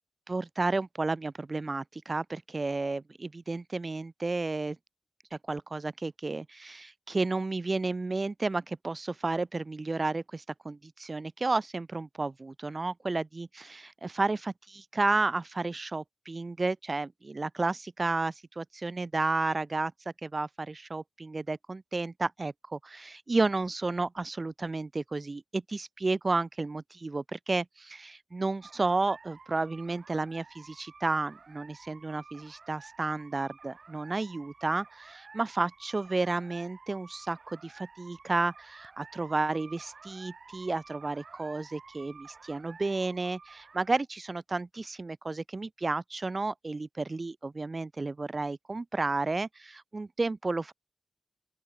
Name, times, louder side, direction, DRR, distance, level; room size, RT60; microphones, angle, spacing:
voice 1, 0.3-4.8 5.3-19.9 20.2-50.7, right 3 dB, 35° right, 1.1 m, -32 dB
sound 1, 28.6-44.0, right 5 dB, 60° right, 3.1 m, -52 dB
open air
wide cardioid pair, 100°, 0 cm